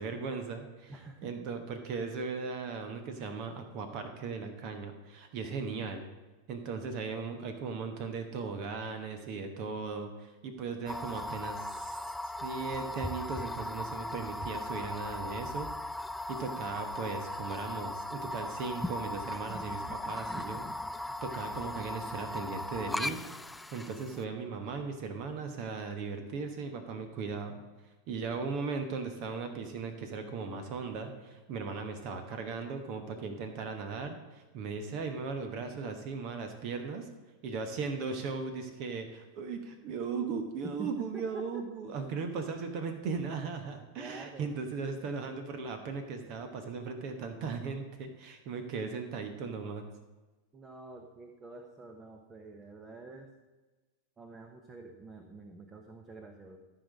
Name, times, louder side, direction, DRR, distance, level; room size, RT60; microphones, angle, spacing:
voice 1, 0.0-6.1 6.5-15.7 16.3-20.7 20.9-23.2 23.7-27.6 28.1-37.1 37.4-49.9, right 4 dB, 40° right, 6 dB, 1.2 m, -37 dB
voice 2, 0.9-1.5 40.8-41.6 44.0-44.6 50.5-53.3 54.2-56.6, right 3 dB, 20° right, 4 dB, 1.0 m, -47 dB
sound 1, 10.9-24.2, left 1 dB, 5° left, 0.3 m, -38 dB
13.5 x 4.9 x 6.4 m, 1.2 s
figure-of-eight pair, 90°, 0 cm